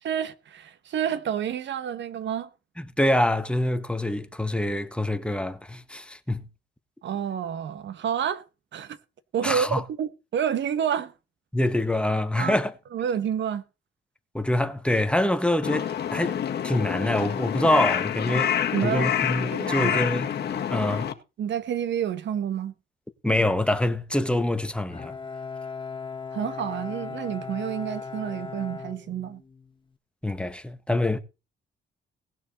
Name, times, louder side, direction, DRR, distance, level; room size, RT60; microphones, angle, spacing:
voice 1, 0.0-2.5 7.0-8.4 8.7-9.0 9.3-11.1 12.4-12.6 12.9-13.6 18.7-19.1 19.5-20.1 21.4-22.7 26.3-29.4, right 9 dB, 65° right, 1.4 m, -29 dB
voice 2, 2.8-6.5 9.4-9.8 11.5-12.7 14.3-18.5 18.8-21.1 23.2-25.1 30.2-31.2, left 1 dB, 5° left, 1.5 m, -25 dB
Crow, 15.6-21.1, left 9 dB, 55° left, 1.9 m, -27 dB
Bowed string instrument, 24.9-29.8, left 5 dB, 25° left, 1.5 m, -37 dB
19.0 x 6.8 x 4.2 m
cardioid pair, 90°, 20 cm